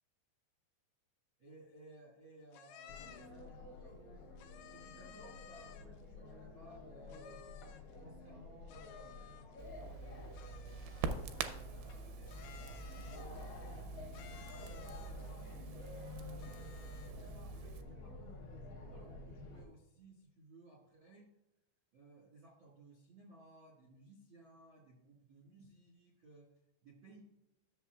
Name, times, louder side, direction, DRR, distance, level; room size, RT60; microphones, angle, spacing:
voice 1, 1.4-4.3 4.7-7.5 8.0-10.9 11.4-15.1 15.7-21.2 21.9-26.4 26.8-27.2, right 2 dB, 65° right, -3 dB, 1.2 m, -59 dB
sound 1, 2.5-3.4 4.4-6.0 7.1-7.9 8.7-9.7 10.3-11.5 12.3-13.5 14.1-15.3 16.4-17.3, left 10 dB, 85° left, 2.3 m, -57 dB
sound 2, 2.9-19.7, left 3 dB, 70° left, 1.8 m, -51 dB
Crackle, 9.6-17.8, right 6 dB, 85° right, 2.3 m, -45 dB
13.0 x 6.7 x 2.3 m, 0.94 s
omnidirectional pair, 5.3 m